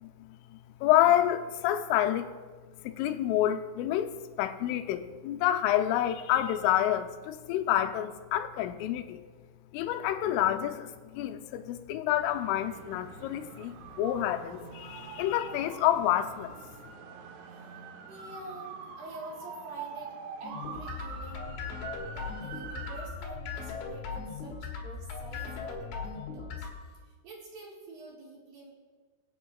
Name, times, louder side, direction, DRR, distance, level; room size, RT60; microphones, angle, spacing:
voice 1, 0.0-2.3 2.8-4.1 4.4-9.2 9.7-16.6, left 12 dB, 85° left, 8 dB, 3.2 m, -28 dB
sound 1, 12.3-23.1, right 5 dB, 85° right, 3.7 m, -44 dB
voice 2, 18.1-20.1 20.4-28.7, right 2 dB, 60° right, -3 dB, 2.8 m, -47 dB
sound 2, 20.4-26.7, left 5 dB, 70° left, 3.6 m, -39 dB
24.0 x 9.0 x 2.4 m, 1.4 s
omnidirectional pair, 5.6 m